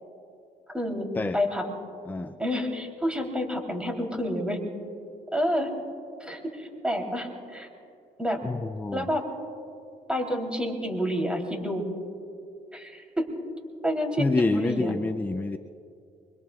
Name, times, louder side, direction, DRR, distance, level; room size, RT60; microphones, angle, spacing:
voice 1, 0.7-1.1 1.3-1.7 2.4-4.6 5.3-5.7 6.2-7.7 8.2-8.4 8.9-9.2 10.1-11.8 12.7-13.3 13.8-14.9, equal, 5° right, 1 dB, 3.1 m, -29 dB
voice 2, 8.4-9.1 14.2-15.6, left 3 dB, 10° left, 12 dB, 0.4 m, -27 dB
25.0 x 22.0 x 2.3 m, 2.5 s
supercardioid pair, 75°, 15 cm